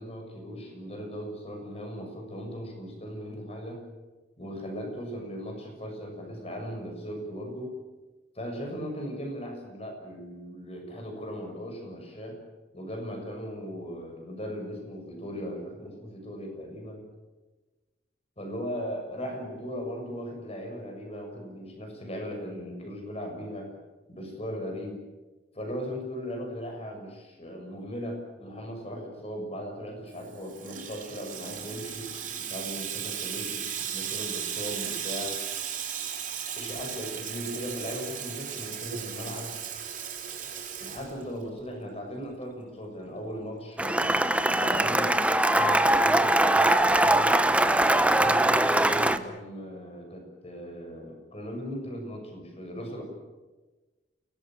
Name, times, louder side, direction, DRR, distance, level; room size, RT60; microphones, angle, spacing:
voice 1, 0.0-3.8 4.4-7.7 8.3-12.4 12.7-17.0 18.4-23.7 24.1-25.0 25.5-32.1 32.4-33.6 33.9-35.3 36.5-39.5 40.8-44.1 44.5-45.1 45.5-47.4 48.0-53.0, equal, 35° left, 3 dB, 6.7 m, -38 dB
Water tap faucet / Sink (filling or washing), 30.2-41.6, right 8 dB, 45° right, 5.1 m, -36 dB
Cheering / Applause, 43.8-49.2, right 1 dB, 5° right, 0.9 m, -22 dB
29.0 x 18.5 x 7.6 m, 1.2 s
head